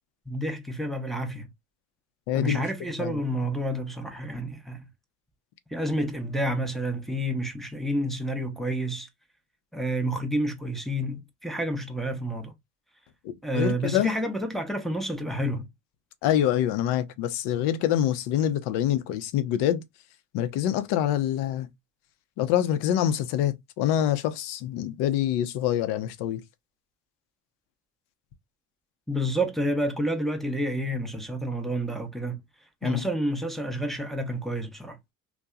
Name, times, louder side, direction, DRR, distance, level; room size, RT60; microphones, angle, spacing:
voice 1, 0.3-1.5 2.3-4.9 5.7-9.1 9.7-12.5 13.4-15.7 29.1-32.4 32.8-35.0, right 1 dB, ahead, 0.6 m, -29 dB
voice 2, 2.3-2.6 3.0-3.2 13.5-14.1 16.2-19.8 20.3-21.7 22.4-26.4 32.8-33.0, left 11 dB, 65° left, 0.7 m, -25 dB
2.6 x 2.2 x 2.3 m
hypercardioid pair, 65°, 44 cm